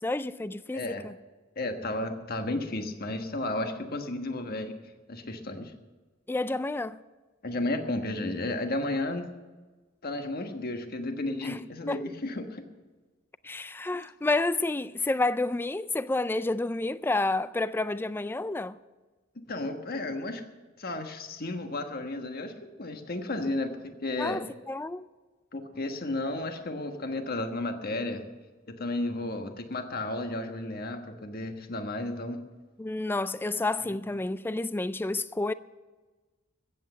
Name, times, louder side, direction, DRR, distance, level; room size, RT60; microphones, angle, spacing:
voice 1, 0.0-1.1 6.3-7.0 11.4-11.6 11.9-12.0 13.4-18.8 24.2-25.0 32.8-35.5, left 2 dB, 10° left, 0.3 m, -30 dB
voice 2, 1.6-4.7 5.1-5.7 7.4-9.3 10.0-12.6 19.5-20.4 20.8-22.5 22.8-24.4 25.5-28.3 28.7-32.4 33.9-34.0, left 2 dB, 50° left, 1.4 m, -33 dB
15.0 x 8.4 x 7.8 m
head